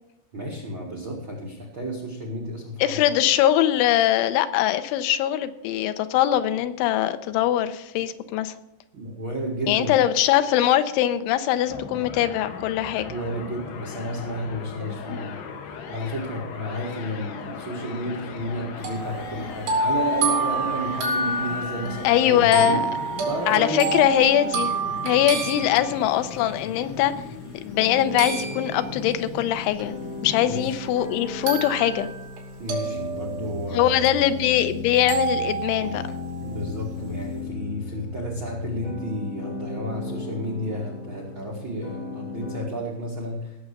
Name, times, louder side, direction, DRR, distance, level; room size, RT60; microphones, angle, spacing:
voice 1, 0.3-3.0 8.9-10.1 13.0-15.3 15.6-22.8 23.2-24.0 30.5-30.8 32.6-34.3 36.4-43.7, equal, 60° right, 0 dB, 1.3 m, -32 dB
voice 2, 2.8-8.5 9.7-13.1 15.1-15.2 22.0-22.9 23.5-24.8 25.0-27.1 27.6-29.9 30.2-32.1 33.7-36.2, left 12 dB, 90° left, 10 dB, 3.1 m, -22 dB
sound 1, 11.7-30.5, left 6 dB, 70° left, 3.2 m, -38 dB
sound 2, 18.8-26.4 28.2-29.1 29.8-29.9 31.5-32.4 32.7-34.5 35.1-36.4, right 4 dB, 75° right, 5.1 m, -28 dB
sound 3, 27.7-42.6, left 2 dB, 40° left, 3.6 m, -36 dB
17.0 x 7.0 x 6.6 m, 0.88 s
omnidirectional pair, 5.4 m